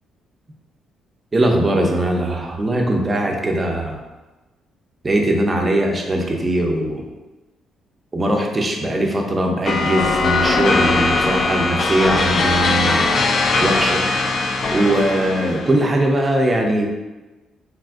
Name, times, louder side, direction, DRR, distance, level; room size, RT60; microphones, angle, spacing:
voice 1, 1.3-4.0 5.0-7.0 8.1-13.0 13.6-14.0 14.7-16.9, right 1 dB, 25° right, 2 dB, 0.5 m, -20 dB
sound 1, 9.7-15.9, left 3 dB, 50° left, 0.3 m, -20 dB
3.4 x 2.4 x 2.3 m, 1.2 s
cardioid pair, 90°, 0 cm